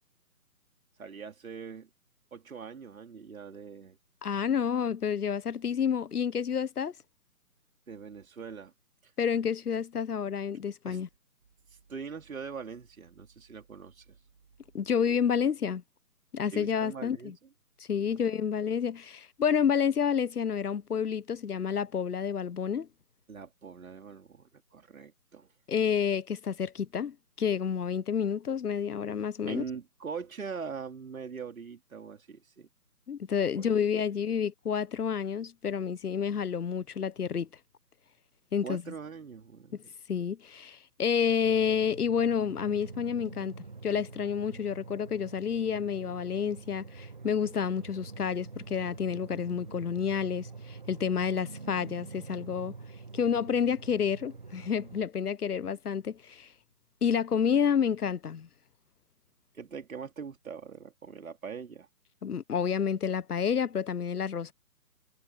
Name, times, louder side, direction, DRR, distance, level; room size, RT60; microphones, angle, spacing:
voice 1, 1.0-1.9 2.3-4.0 7.9-8.7 9.0-9.1 10.9-11.0 11.9-14.2 16.5-17.3 18.0-18.1 23.3-25.5 29.5-32.7 33.6-33.7 38.6-39.9 59.5-61.9, right 6 dB, 55° right, 4.2 m, -42 dB
voice 2, 4.2-6.9 9.2-11.1 14.7-15.8 16.3-17.3 17.9-22.9 25.7-29.6 33.1-37.5 38.5-38.8 40.1-43.5 43.8-52.7 53.1-56.5 57.0-58.5 62.2-64.5, left 7 dB, 70° left, 1.0 m, -29 dB
sound 1, 41.4-55.0, right 4 dB, 30° right, 0.7 m, -46 dB
hypercardioid pair, 165°, 48 cm